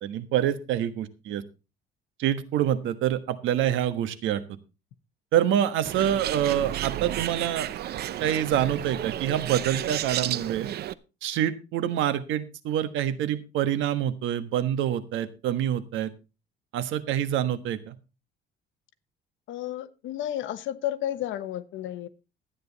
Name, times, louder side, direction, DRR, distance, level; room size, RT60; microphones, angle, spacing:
voice 1, 0.0-1.4 2.2-4.4 5.3-7.7 8.2-10.7 11.2-16.1 16.7-17.9, right 10 dB, 75° right, 12 dB, 1.4 m, -26 dB
Bird, 5.9-10.9, right 12 dB, 55° right, 0.7 m, -32 dB
voice 2, 19.5-22.1, left 12 dB, 75° left, 13 dB, 1.1 m, -32 dB
13.0 x 9.5 x 4.1 m, 0.30 s
cardioid pair, 140°, 20 cm